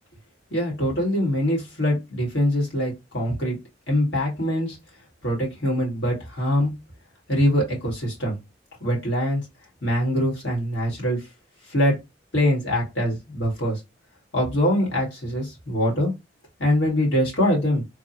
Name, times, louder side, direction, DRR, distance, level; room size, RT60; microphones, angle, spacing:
voice 1, 0.5-3.6 3.9-4.8 5.2-6.7 7.3-8.4 8.8-9.4 9.8-11.2 11.7-11.9 12.3-13.8 14.3-16.1 16.6-17.8, equal, 75° left, -2 dB, 1.8 m, -23 dB
3.4 x 2.3 x 2.8 m, 0.23 s
head